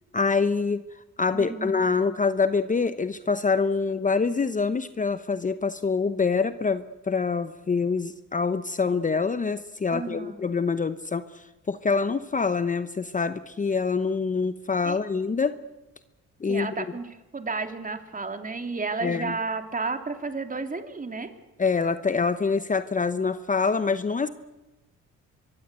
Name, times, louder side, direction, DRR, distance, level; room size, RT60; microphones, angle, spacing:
voice 1, 0.1-0.8 1.2-15.6 16.4-16.7 19.0-19.3 21.6-24.3, left 4 dB, 25° left, 12 dB, 0.9 m, -25 dB
voice 2, 1.3-1.8 9.9-10.4 14.8-15.0 16.5-21.3, right 4 dB, 25° right, 7 dB, 3.0 m, -32 dB
25.0 x 22.5 x 8.2 m, 1.1 s
cardioid pair, 90°, 30 cm